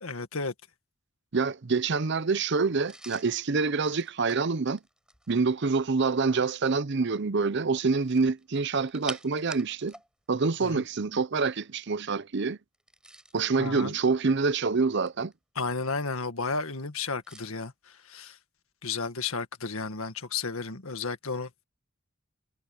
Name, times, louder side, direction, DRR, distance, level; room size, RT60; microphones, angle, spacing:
voice 1, 0.0-0.5 10.6-10.8 13.6-13.9 15.6-17.7 18.1-18.4 18.8-21.5, left 4 dB, 80° left, 1.8 m, -32 dB
voice 2, 1.3-4.8 5.3-9.9 10.3-12.6 13.3-15.3, right 4 dB, 55° right, 0.7 m, -26 dB
sound 1, 2.8-5.5 7.9-10.1 10.3-10.5 12.7-13.5 14.2-15.3 17.2-17.5, right 1 dB, 5° right, 7.1 m, -46 dB
head